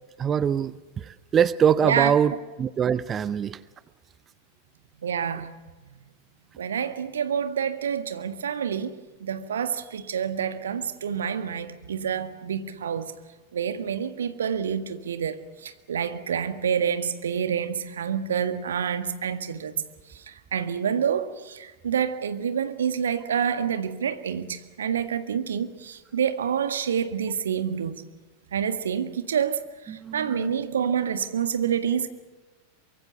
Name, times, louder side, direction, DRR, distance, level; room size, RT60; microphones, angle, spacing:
voice 1, 0.2-3.6 29.9-30.5, right 8 dB, 25° right, 0.6 m, -24 dB
voice 2, 5.0-5.5 6.6-8.9 9.2-13.1 13.5-19.8 20.3-28.0 28.5-29.6 29.9-32.1, right 8 dB, 65° right, 1.7 m, -28 dB
24.0 x 23.0 x 7.0 m
figure-of-eight pair, 90°, 0 cm